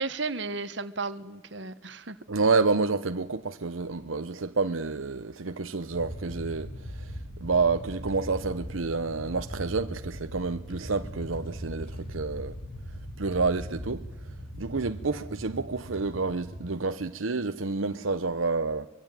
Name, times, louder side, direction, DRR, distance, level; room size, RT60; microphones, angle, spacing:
voice 1, 0.0-2.2, right 3 dB, 65° right, 1.4 m, -34 dB
voice 2, 2.3-7.1 7.4-12.6 13.2-14.0 14.6-18.9, right 4 dB, 90° right, 0.9 m, -29 dB
sound 1, 5.9-16.7, equal, 45° left, 4.3 m, -39 dB
24.0 x 23.0 x 9.1 m
head